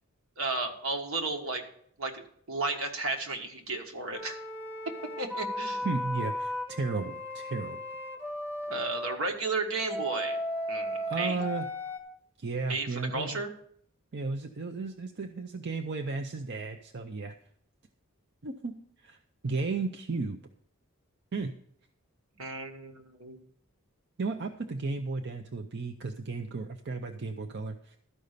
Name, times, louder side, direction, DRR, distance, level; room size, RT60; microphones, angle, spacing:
voice 1, 0.4-1.6 2.0-4.4 5.2-5.8 8.7-10.4 10.7-11.4 12.7-13.5 22.4-23.4, right 3 dB, 70° right, 4 dB, 1.5 m, -33 dB
sound 1, 4.1-9.2 9.9-12.0, equal, 10° right, 1.2 m, -35 dB
voice 2, 5.8-7.8 11.1-11.7 12.4-13.4 14.1-17.3 18.4-19.2 19.4-20.4 21.3-21.5 24.2-28.0, right 3 dB, 50° right, 5 dB, 0.6 m, -34 dB
12.5 x 5.4 x 6.6 m, 0.66 s
head